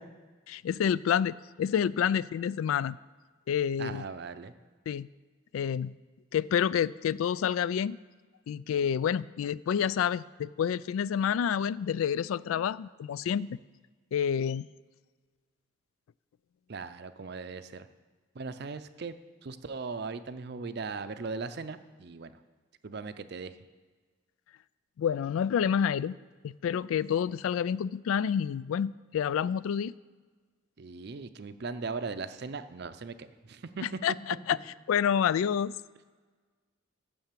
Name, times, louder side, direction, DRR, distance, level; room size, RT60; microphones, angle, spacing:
voice 1, 0.5-3.0 3.5-4.1 4.9-5.1 5.5-5.9 6.3-8.0 8.5-13.6 14.1-14.7 25.0-26.2 26.4-29.9 34.0-34.1 34.5-34.6 34.9-35.7, left 8 dB, 85° left, 20 dB, 0.3 m, -28 dB
voice 2, 3.8-4.5 16.7-17.9 18.3-19.2 19.4-22.4 22.8-23.6 30.8-33.8, right 4 dB, 55° right, 11 dB, 0.5 m, -39 dB
8.7 x 7.0 x 7.5 m, 1.4 s
head